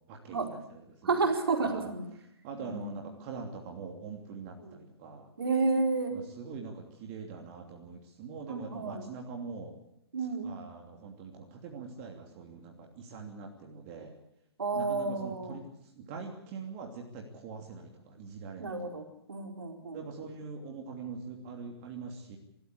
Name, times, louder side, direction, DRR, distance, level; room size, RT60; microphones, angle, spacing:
voice 1, 0.1-1.3 1.6-1.9 2.4-5.3 6.1-9.7 10.4-14.1 14.7-15.6 15.9-18.8 19.9-22.4, right 5 dB, 35° right, 1 dB, 2.9 m, -43 dB
voice 2, 1.0-2.1 2.6-3.0 4.6-4.8 5.4-6.1 8.5-9.1 10.1-10.5 14.6-15.6 18.6-20.0, right 3 dB, 65° right, 3 dB, 4.4 m, -31 dB
26.0 x 14.0 x 8.3 m, 0.80 s
figure-of-eight pair, 120°, 13 cm